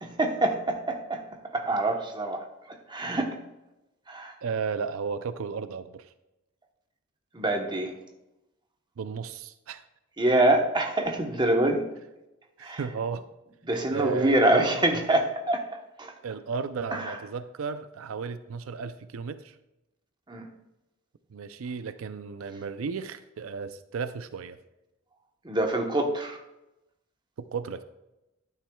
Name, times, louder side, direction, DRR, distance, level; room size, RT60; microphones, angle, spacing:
voice 1, 0.0-1.2 1.5-2.4 2.9-3.4 4.1-4.3 7.3-7.9 10.2-11.8 12.6-12.8 13.6-15.6 16.0-16.1 16.9-17.2 20.3-20.5 25.4-26.4, right 1 dB, 20° right, 3 dB, 1.0 m, -25 dB
voice 2, 4.4-6.1 9.0-9.8 12.6-13.2 13.9-14.8 16.2-19.6 21.3-24.6 27.4-27.8, right 5 dB, 90° right, 12 dB, 0.4 m, -34 dB
11.5 x 9.2 x 2.3 m, 0.95 s
head